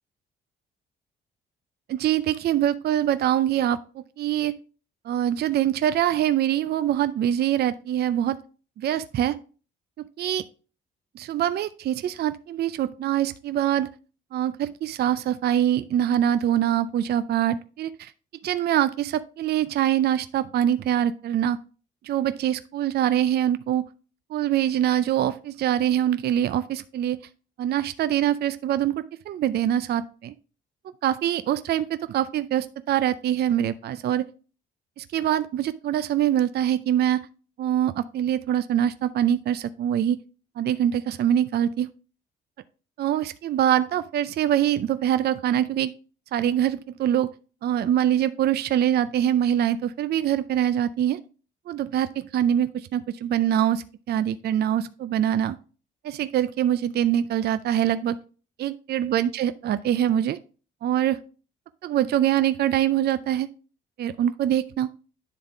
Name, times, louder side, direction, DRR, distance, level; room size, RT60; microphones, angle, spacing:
voice 1, 1.9-4.5 5.1-8.4 8.8-9.4 10.2-10.4 11.2-13.9 14.3-18.1 18.4-21.6 22.0-23.9 24.3-27.2 27.6-30.3 31.0-34.3 35.0-37.3 37.6-40.2 40.6-41.9 43.0-45.9 46.3-47.3 47.6-51.2 51.7-55.6 56.0-58.2 58.6-60.4 60.8-61.2 61.8-63.5 64.0-64.9, right 11 dB, 55° right, 13 dB, 0.4 m, -24 dB
9.9 x 3.6 x 3.5 m, 0.37 s
cardioid pair, 90°, 20 cm